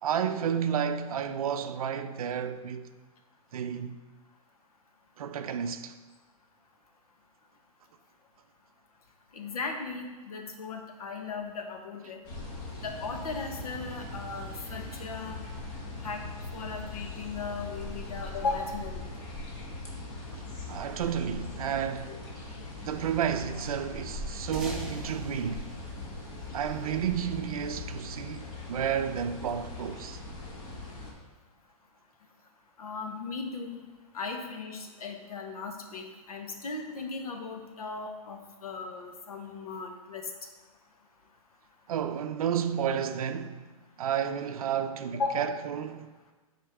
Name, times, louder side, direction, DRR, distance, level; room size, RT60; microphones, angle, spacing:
voice 1, 0.0-2.9 3.5-4.0 5.2-5.9 20.7-22.1 22.8-25.7 26.5-30.2 41.9-43.6 44.0-46.1, right 8 dB, 75° right, 0.5 m, -31 dB
voice 2, 9.3-12.2 12.8-15.4 16.0-16.2 16.5-19.0 22.1-22.2 32.8-33.8 34.1-40.2 45.2-45.5, left 4 dB, 75° left, 1.2 m, -37 dB
sound 1, 12.2-31.1, left 2 dB, 20° left, 0.9 m, -40 dB
sound 2, 24.5-27.3, right 1 dB, 5° right, 0.5 m, -41 dB
9.2 x 4.4 x 3.5 m
hypercardioid pair, 170°, 19 cm